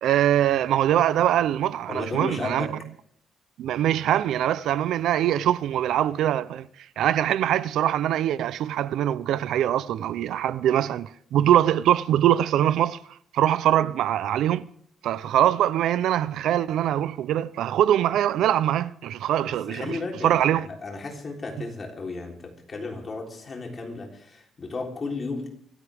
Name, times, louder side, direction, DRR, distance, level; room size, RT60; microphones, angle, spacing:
voice 1, 0.0-2.7 3.6-6.7 7.0-13.0 13.3-14.7 15.0-20.0 20.2-20.7, right 11 dB, 75° right, 0.6 m, -23 dB
voice 2, 1.9-2.8 19.5-25.5, left 3 dB, 30° left, 3.5 m, -34 dB
25.0 x 14.5 x 3.5 m
cardioid pair, 160°, 0 cm